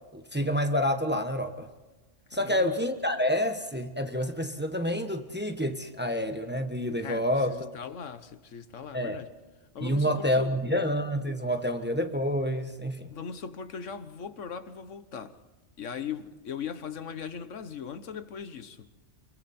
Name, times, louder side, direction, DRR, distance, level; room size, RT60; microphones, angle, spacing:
voice 1, 0.1-1.7 2.3-7.5 8.9-9.2 9.8-13.1, equal, 10° right, 1.2 m, -28 dB
voice 2, 2.3-2.7 7.0-9.3 9.7-10.8 13.1-15.4 15.8-18.9, left 7 dB, 80° left, 1.4 m, -39 dB
27.0 x 22.5 x 4.3 m
omnidirectional pair, 1.3 m